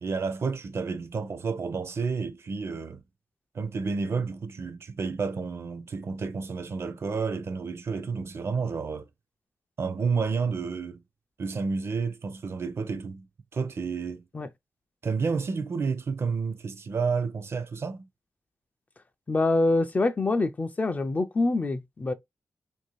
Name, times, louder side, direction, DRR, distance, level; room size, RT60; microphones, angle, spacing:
voice 1, 0.0-3.0 3.5-9.1 9.8-11.0 11.4-13.3 13.5-14.2 15.0-18.1, right 5 dB, 50° right, 0.5 m, -30 dB
voice 2, 19.3-22.1, left 2 dB, 30° left, 0.3 m, -25 dB
2.6 x 2.4 x 3.0 m
wide cardioid pair, 110°, 6 cm